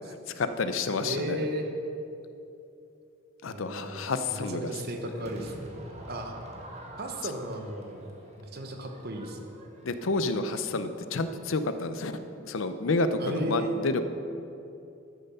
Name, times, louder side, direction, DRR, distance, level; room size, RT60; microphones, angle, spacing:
voice 1, 0.3-1.5 3.4-4.7 9.8-12.2 12.4-14.0, left 3 dB, 70° left, 10 dB, 0.6 m, -29 dB
voice 2, 1.0-1.7 3.5-4.0 4.3-5.7 6.1-6.3 7.0-8.1 8.4-9.6 13.2-13.8, right 1 dB, 50° right, 4 dB, 1.1 m, -34 dB
Crowd / Fireworks, 5.2-10.5, equal, 35° right, 1.4 m, -46 dB
12.5 x 7.0 x 5.6 m, 2.7 s
head